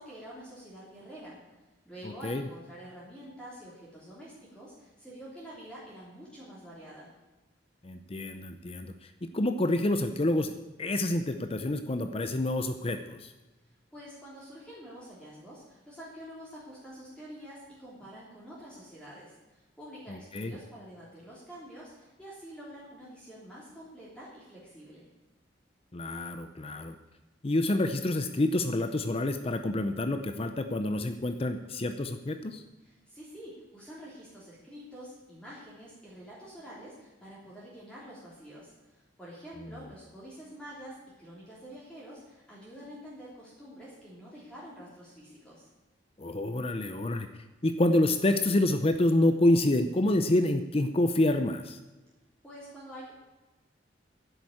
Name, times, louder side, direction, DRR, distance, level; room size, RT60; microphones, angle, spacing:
voice 1, 0.0-1.4 1.8-7.1 13.6-25.1 32.8-45.7 52.4-53.1, equal, 5° left, -8 dB, 3.2 m, -47 dB
voice 2, 7.8-8.9 9.2-10.5 10.8-13.3 20.1-20.6 25.9-26.9 27.4-32.6 46.2-47.3 47.6-51.8, left 1 dB, 30° left, 8 dB, 0.6 m, -27 dB
11.0 x 8.1 x 8.6 m, 1.1 s
head